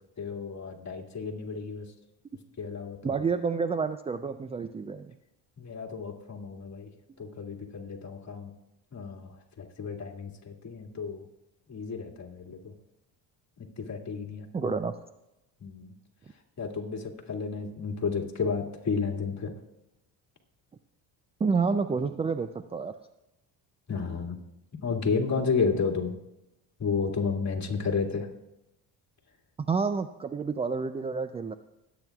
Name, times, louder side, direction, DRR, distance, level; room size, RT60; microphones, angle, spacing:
voice 1, 0.2-1.9 2.6-3.2 5.6-6.9 7.2-8.5 8.9-9.3 9.6-11.2 11.7-12.7 13.8-14.7 15.6-15.9 16.6-19.5 23.9-24.4 24.8-26.1 26.8-28.3, left 5 dB, 35° left, 0 dB, 2.2 m, -32 dB
voice 2, 3.0-5.2 14.5-14.9 21.4-23.0 29.6-31.5, right 5 dB, 15° right, 11 dB, 0.3 m, -29 dB
21.0 x 9.1 x 2.3 m, 0.91 s
supercardioid pair, 85°, 46 cm